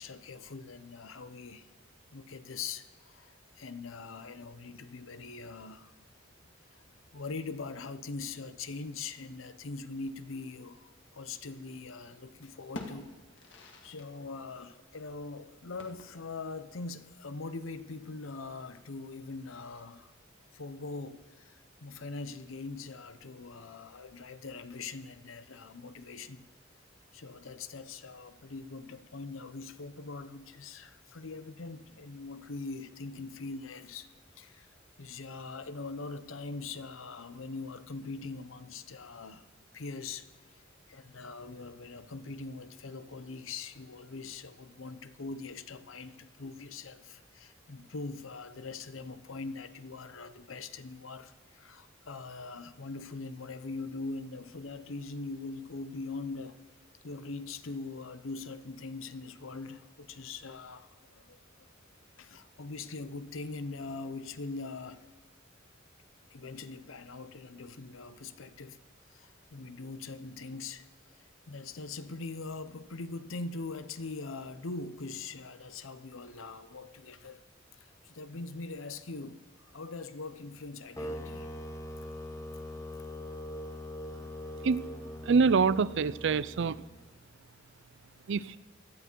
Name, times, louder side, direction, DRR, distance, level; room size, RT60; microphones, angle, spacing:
voice 1, 0.0-1.7 2.1-5.9 6.8-13.1 13.8-20.1 20.5-26.5 27.1-34.1 34.4-34.7 35.0-39.5 39.7-40.6 40.9-56.6 57.0-61.7 62.2-65.1 66.3-68.8 69.1-77.4 77.7-79.5 79.7-81.5, left 3 dB, 85° left, 0.8 m, -42 dB
sound 1, 11.4-12.2 12.5-14.1 14.4-14.5 15.8-16.4, left 2 dB, 65° left, 1.8 m, -47 dB
sound 2, 81.0-87.0, left 1 dB, 15° left, 0.9 m, -42 dB
voice 2, 85.2-86.8 88.3-88.6, right 5 dB, 65° right, 0.5 m, -25 dB
18.0 x 12.5 x 4.6 m
head